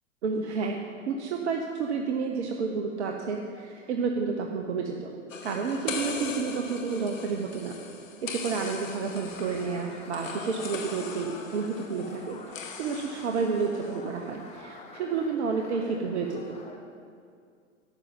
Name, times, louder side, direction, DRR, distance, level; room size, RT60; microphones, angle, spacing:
voice 1, 0.2-5.1 5.4-7.8 8.2-16.6, right 5 dB, 55° right, 2 dB, 1.0 m, -30 dB
sound 1, 5.3-14.0, left 5 dB, 75° left, 1.2 m, -40 dB
sound 2, 8.2-16.8, left 3 dB, 15° left, 1.0 m, -47 dB
12.0 x 6.3 x 7.5 m, 2.3 s
figure-of-eight pair, 105°, 40 cm